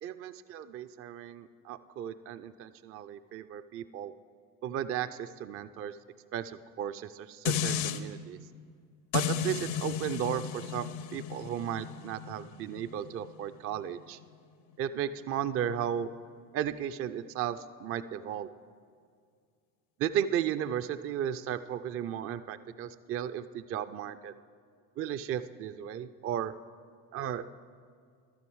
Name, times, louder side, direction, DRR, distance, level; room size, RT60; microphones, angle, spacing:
voice 1, 0.0-4.1 4.6-6.0 6.3-8.4 9.1-14.2 14.8-16.1 16.5-18.5 20.0-24.3 25.0-26.5 27.1-27.5, right 10 dB, 30° right, 14 dB, 0.4 m, -35 dB
sound 1, 7.5-8.0 9.1-14.3 14.7-14.8, left 9 dB, 70° left, 0.8 m, -34 dB
12.0 x 8.8 x 4.7 m, 2.2 s
hypercardioid pair, 60°, 50 cm